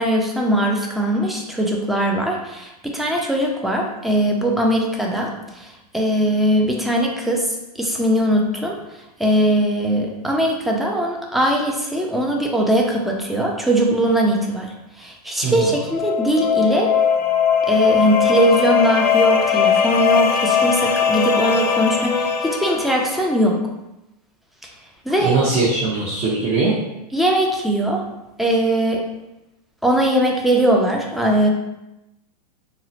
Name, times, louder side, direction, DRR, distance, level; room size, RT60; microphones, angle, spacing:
voice 1, 0.0-8.8 9.2-14.7 15.0-16.9 17.7-23.6 25.1-25.4 27.1-28.0 28.4-29.0 29.8-31.5, right 1 dB, ahead, 0 dB, 0.3 m, -20 dB
voice 2, 15.4-15.7 25.2-26.7, right 3 dB, 35° right, -6 dB, 0.7 m, -20 dB
sound 1, 15.5-23.3, left 7 dB, 85° left, 0.5 m, -19 dB
3.8 x 2.0 x 2.8 m, 0.91 s
hypercardioid pair, 120°, 21 cm